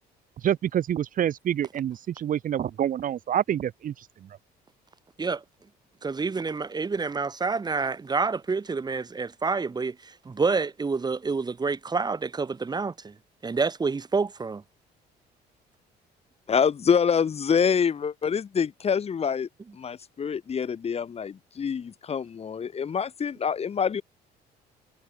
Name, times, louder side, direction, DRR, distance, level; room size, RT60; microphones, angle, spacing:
voice 1, 0.4-3.9, right 10 dB, 55° right, 2.1 m, -27 dB
voice 2, 6.0-13.1 13.4-14.6, right 4 dB, 25° right, 3.6 m, -28 dB
voice 3, 16.5-19.5 19.7-24.0, left 7 dB, 35° left, 2.7 m, -26 dB
cardioid pair, 110°, 17 cm